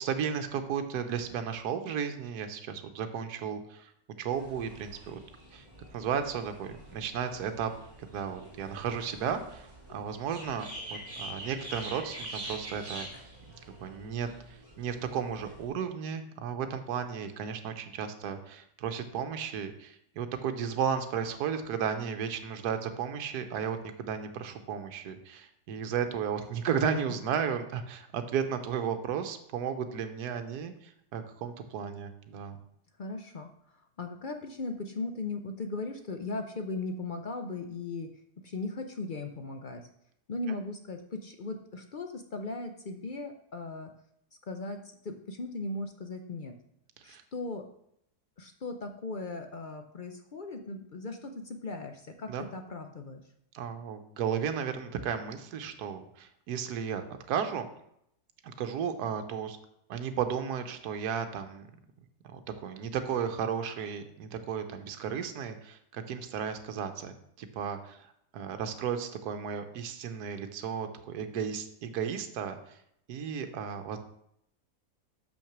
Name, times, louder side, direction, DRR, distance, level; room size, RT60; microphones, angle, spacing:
voice 1, 0.0-3.9 4.2-5.2 5.5-5.6 5.9-7.7 8.0-13.1 13.8-32.6 47.1-47.2 52.3-52.4 53.5-57.7 58.4-59.6 59.9-61.7 62.2-68.1 68.3-72.8 73.1-74.0, right 7 dB, 80° right, 8 dB, 1.3 m, -34 dB
sound 1, 4.3-15.7, right 1 dB, 30° right, 2.9 m, -45 dB
voice 2, 33.0-33.5 34.0-38.1 38.4-39.9 40.3-43.9 44.5-46.5 47.0-47.6 48.4-53.2, left 3 dB, 60° left, 5 dB, 0.5 m, -38 dB
6.4 x 6.0 x 5.9 m, 0.73 s
omnidirectional pair, 1.7 m